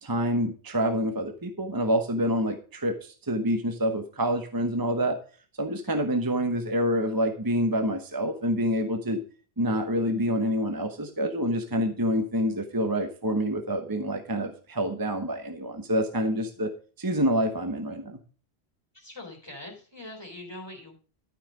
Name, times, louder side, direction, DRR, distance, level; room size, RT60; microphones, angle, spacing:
voice 1, 0.0-5.2 5.6-9.2 9.6-16.7 17.0-18.2, equal, 20° right, 6 dB, 1.0 m, -27 dB
voice 2, 18.9-21.0, left 1 dB, 25° left, 0 dB, 3.3 m, -42 dB
12.5 x 5.8 x 4.9 m, 0.39 s
omnidirectional pair, 1.1 m